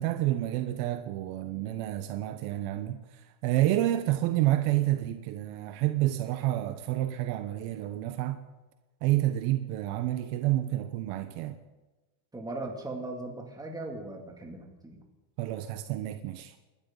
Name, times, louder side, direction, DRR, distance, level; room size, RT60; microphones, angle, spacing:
voice 1, 0.0-3.0 3.4-8.4 9.0-11.5 15.4-16.5, right 14 dB, 60° right, 1.1 m, -29 dB
voice 2, 12.3-15.0, right 2 dB, 10° right, 2.6 m, -38 dB
29.5 x 12.0 x 4.0 m
supercardioid pair, 150°, 48 cm